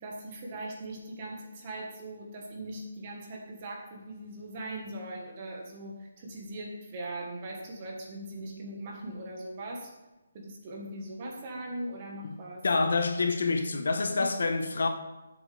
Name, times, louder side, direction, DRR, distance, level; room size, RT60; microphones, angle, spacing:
voice 1, 0.0-9.9 10.3-12.6 14.1-14.2, right 1 dB, 20° right, 1.5 m, -40 dB
voice 2, 12.6-14.9, left 3 dB, 60° left, 1.2 m, -27 dB
13.0 x 8.1 x 3.5 m
hypercardioid pair, 180°, 0 cm